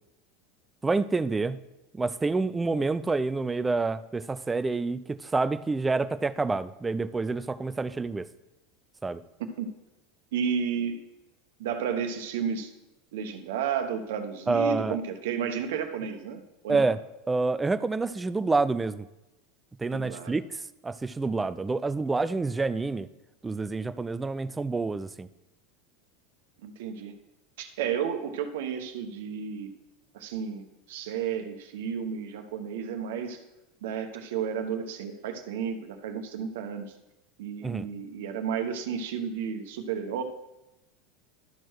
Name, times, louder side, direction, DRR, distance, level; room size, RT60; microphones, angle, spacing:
voice 1, 0.8-1.6 1.9-8.3 9.0-9.2 14.5-15.0 16.7-17.0 17.3-19.1 19.8-20.4 20.8-23.1 23.4-25.3 37.6-37.9, right 3 dB, 15° right, 14 dB, 0.4 m, -28 dB
voice 2, 10.3-11.1 11.6-12.7 13.1-16.9 19.9-20.4 26.6-27.1 27.6-29.7 30.1-33.4 33.8-36.9 37.4-40.2, right 7 dB, 75° right, 7 dB, 1.0 m, -32 dB
12.5 x 4.5 x 4.7 m, 0.96 s
hypercardioid pair, 95°, 0 cm